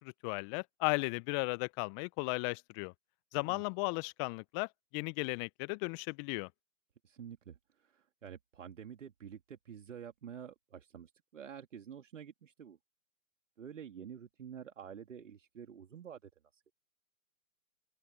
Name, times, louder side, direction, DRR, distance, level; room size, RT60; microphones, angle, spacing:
voice 1, 0.0-2.9 3.3-6.5, left 33 dB, 20° left, 0.9 m, -35 dB
voice 2, 7.0-12.8 13.6-16.6, right 8 dB, 60° right, 2.7 m, -49 dB
open air
figure-of-eight pair, 125°, 42 cm